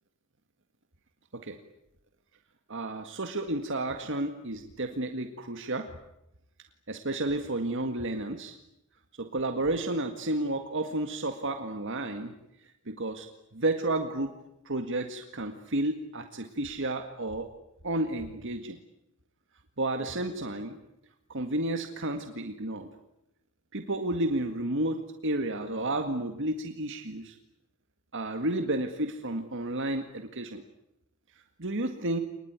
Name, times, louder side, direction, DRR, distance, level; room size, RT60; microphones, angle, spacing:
voice 1, 2.7-5.9 6.9-8.6 9.2-12.4 12.9-13.3 13.5-14.3 14.7-17.5 17.8-18.8 19.8-20.8 21.3-22.9 23.7-27.4 28.1-30.6 31.6-32.2, right 2 dB, 60° right, 6 dB, 1.9 m, -31 dB
28.0 x 20.5 x 9.6 m, 0.86 s
head